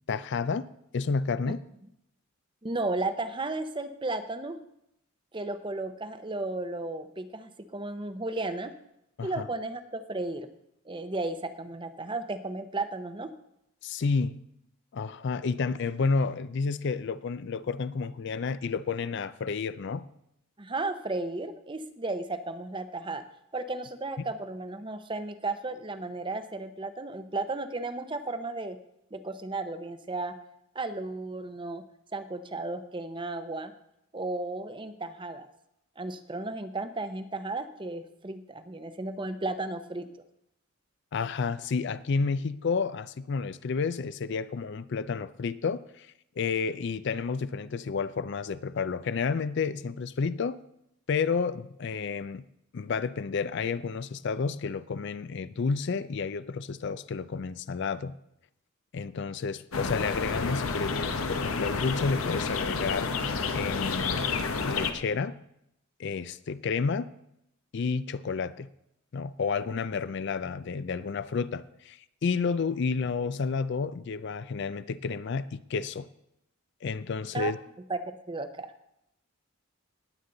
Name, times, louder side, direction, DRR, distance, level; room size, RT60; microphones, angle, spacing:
voice 1, 0.1-0.7 0.9-1.6 9.2-9.4 13.8-14.4 14.9-20.0 41.1-46.1 46.4-50.6 51.1-52.4 52.7-58.1 58.9-63.2 63.5-64.3 64.6-65.4 66.0-67.1 67.7-68.7 69.1-76.1 76.8-77.6, left 5 dB, 55° left, 15 dB, 0.4 m, -30 dB
voice 2, 2.6-4.6 5.3-8.7 9.2-10.5 10.9-13.3 20.6-23.2 23.5-28.8 29.1-30.4 30.7-31.8 32.1-33.7 34.1-35.5 36.0-40.1 77.3-77.5 77.9-78.7, right 2 dB, 25° right, 10 dB, 0.7 m, -34 dB
sound 1, 59.7-64.9, left 4 dB, 90° left, 0.9 m, -30 dB
19.0 x 8.2 x 3.9 m, 0.79 s
head